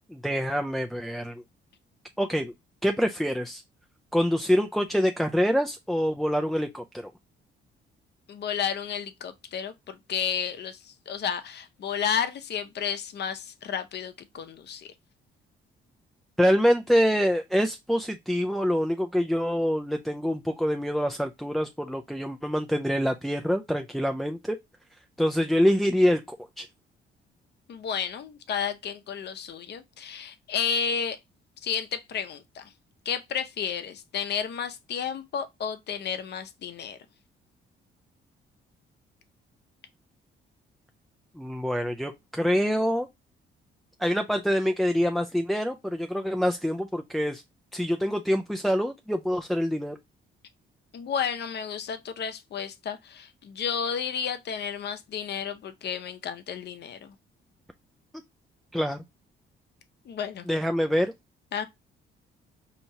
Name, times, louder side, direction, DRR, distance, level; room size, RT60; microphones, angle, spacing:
voice 1, 0.1-1.4 2.2-2.5 2.8-3.6 4.1-7.1 16.4-24.6 25.2-26.7 41.4-43.1 44.0-47.4 47.7-50.0 58.7-59.0 60.5-61.1, equal, ahead, 0.3 m, -25 dB
voice 2, 8.3-14.9 27.7-31.2 31.6-32.7 33.0-37.0 50.9-57.1 60.1-60.5 61.5-61.7, left 7 dB, 60° left, 0.7 m, -32 dB
4.4 x 2.9 x 2.7 m
cardioid pair, 90°, 20 cm